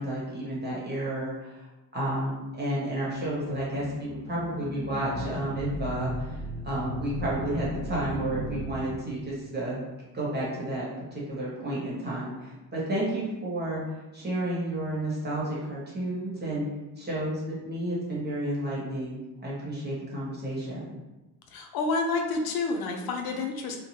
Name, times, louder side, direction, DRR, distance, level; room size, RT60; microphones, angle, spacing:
voice 1, 0.0-9.8 10.1-10.8 11.1-16.6 17.0-20.9, right 1 dB, 25° right, -7 dB, 1.1 m, -31 dB
sound 1, 3.1-9.4, right 1 dB, 40° left, 1.3 m, -36 dB
voice 2, 21.5-23.8, left 3 dB, 75° left, 3 dB, 0.5 m, -29 dB
2.7 x 2.1 x 3.0 m, 1.1 s
cardioid pair, 125°, 37 cm